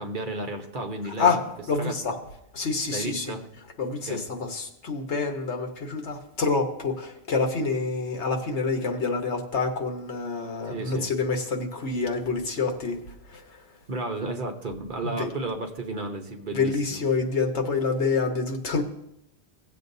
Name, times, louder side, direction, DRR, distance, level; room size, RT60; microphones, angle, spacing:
voice 1, 0.0-1.4 1.8-2.2 2.9-3.4 4.1-4.2 10.6-11.1 13.9-17.0, right 2 dB, 50° right, 3 dB, 1.1 m, -33 dB
voice 2, 1.7-2.2 2.5-3.3 3.8-13.0 13.3-13.6 15.0-15.3 16.5-18.8, left 4 dB, 85° left, 4 dB, 1.5 m, -27 dB
17.0 x 7.7 x 2.7 m, 0.80 s
omnidirectional pair, 1.1 m